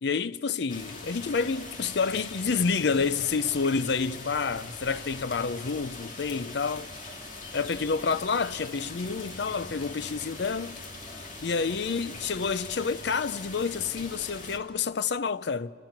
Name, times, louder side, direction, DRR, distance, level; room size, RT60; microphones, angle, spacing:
voice 1, 0.0-6.9 7.5-10.7 11.4-15.7, left 5 dB, 60° left, 0.5 m, -29 dB
sound 1, 0.7-14.6, left 2 dB, 40° left, 2.4 m, -42 dB
28.5 x 28.5 x 5.9 m
head